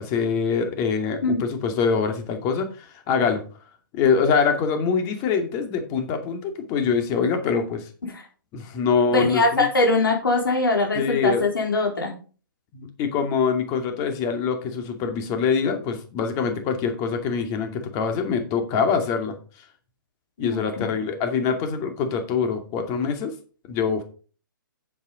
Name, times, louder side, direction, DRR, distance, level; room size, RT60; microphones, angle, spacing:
voice 1, 0.0-3.4 3.9-7.9 8.5-9.7 10.9-11.4 12.7-19.3 20.4-23.3 23.7-24.0, left 6 dB, 30° left, 6 dB, 2.5 m, -24 dB
voice 2, 9.1-12.1 20.5-20.9, left 2 dB, 80° left, 1 dB, 3.9 m, -22 dB
8.3 x 7.4 x 5.2 m, 0.39 s
hypercardioid pair, 130°, 11 cm